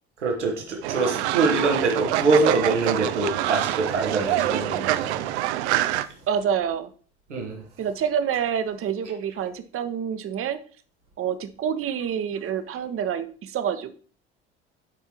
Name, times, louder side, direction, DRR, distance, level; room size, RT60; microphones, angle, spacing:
voice 1, 0.2-5.3 7.3-7.6, right 3 dB, 90° right, 1.4 m, -24 dB
Fowl, 0.8-6.0, right 14 dB, 75° right, 0.5 m, -26 dB
voice 2, 6.3-6.9 7.8-10.6 11.2-13.9, right 8 dB, 40° right, 0.9 m, -27 dB
10.5 x 4.6 x 2.9 m
hypercardioid pair, 60°, 34 cm